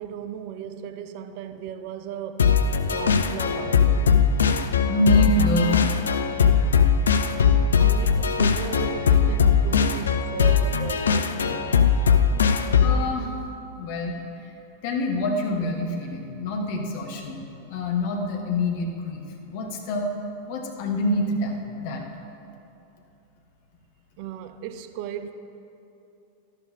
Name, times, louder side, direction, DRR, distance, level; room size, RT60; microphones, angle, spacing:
voice 1, 0.0-4.2 7.8-12.0 24.2-25.3, right 9 dB, 45° right, 0.4 m, -36 dB
sound 1, 2.4-13.1, left 6 dB, 70° left, 0.4 m, -20 dB
voice 2, 4.9-6.0 12.8-13.3 13.8-14.2 14.8-17.4 17.7-20.1 20.5-22.0, left 1 dB, 50° left, 1.2 m, -26 dB
12.5 x 11.0 x 2.6 m
figure-of-eight pair, 90°, 0 cm